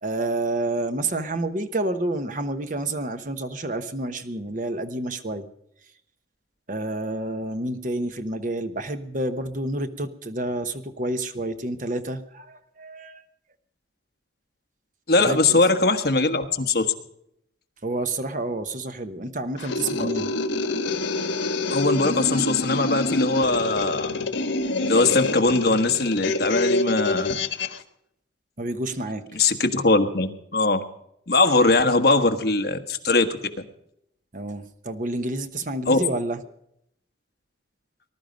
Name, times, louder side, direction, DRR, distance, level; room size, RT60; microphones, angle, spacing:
voice 1, 0.0-5.5 6.7-13.2 15.2-15.6 17.8-20.3 28.6-29.2 34.3-36.4, right 2 dB, 45° right, 9 dB, 1.1 m, -29 dB
voice 2, 15.1-16.9 20.0-20.1 21.7-24.2 24.9-27.4 29.3-30.8 31.3-33.3 35.9-36.0, left 3 dB, 55° left, 7 dB, 1.4 m, -21 dB
sound 1, 19.6-27.8, left 3 dB, 85° left, 1.4 m, -27 dB
20.0 x 12.0 x 5.2 m, 0.76 s
head